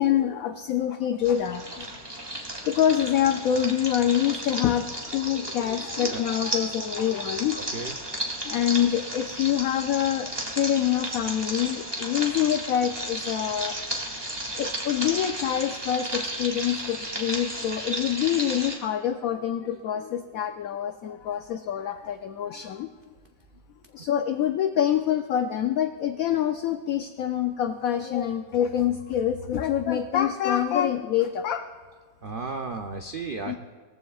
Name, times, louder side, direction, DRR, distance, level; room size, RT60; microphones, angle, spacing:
voice 1, 0.0-1.9 2.7-7.8 8.4-13.8 14.5-22.9 23.9-31.6 33.4-33.6, left 10 dB, 70° left, 7 dB, 0.9 m, -26 dB
sound 1, 1.2-18.8, right 1 dB, 15° right, 1.6 m, -34 dB
voice 2, 7.6-8.0 32.2-33.6, right 4 dB, 80° right, 4 dB, 0.4 m, -34 dB
19.5 x 14.5 x 2.4 m, 1.4 s
omnidirectional pair, 1.9 m